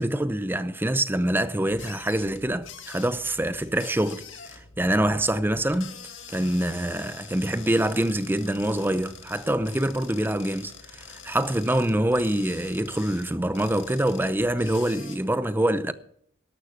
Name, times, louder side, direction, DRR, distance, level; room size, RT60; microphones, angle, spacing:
voice 1, 0.0-6.0 6.3-15.9, right 1 dB, 10° right, 0.6 m, -25 dB
sound 1, 1.7-15.2, left 6 dB, 65° left, 2.1 m, -45 dB
13.0 x 11.5 x 5.9 m
head